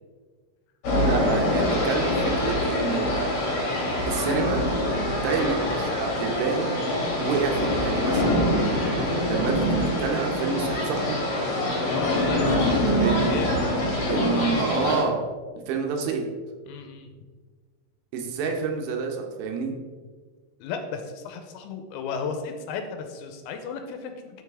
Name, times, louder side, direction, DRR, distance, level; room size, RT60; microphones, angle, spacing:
sound 1, 0.8-15.0, left 1 dB, 55° left, 1.8 m, -24 dB
voice 1, 1.0-3.2 4.1-4.6 5.2-6.8 7.2-8.4 9.2-11.2 13.0-13.4 14.1-15.2 15.7-16.2 18.1-19.7, right 5 dB, 80° right, 2 dB, 3.2 m, -28 dB
voice 2, 11.9-14.5 16.7-17.1 20.6-24.4, left 5 dB, 85° left, 6 dB, 2.9 m, -35 dB
12.0 x 4.8 x 3.6 m, 1.5 s
omnidirectional pair, 5.5 m